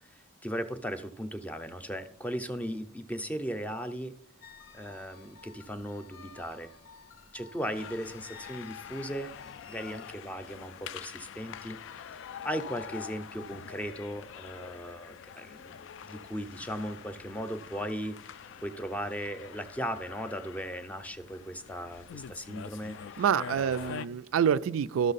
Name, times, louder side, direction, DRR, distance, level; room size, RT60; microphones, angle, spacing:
voice 1, 0.4-4.1 4.7-6.7 7.3-9.3 9.6-23.2 23.5-24.0, equal, 5° left, 0.5 m, -37 dB
sound 1, 4.4-10.1, left 5 dB, 80° left, 0.7 m, -53 dB
sound 2, 7.7-24.1, left 8 dB, 65° left, 0.3 m, -45 dB
voice 2, 23.2-25.1, right 8 dB, 85° right, 0.3 m, -27 dB
12.0 x 6.3 x 4.0 m
head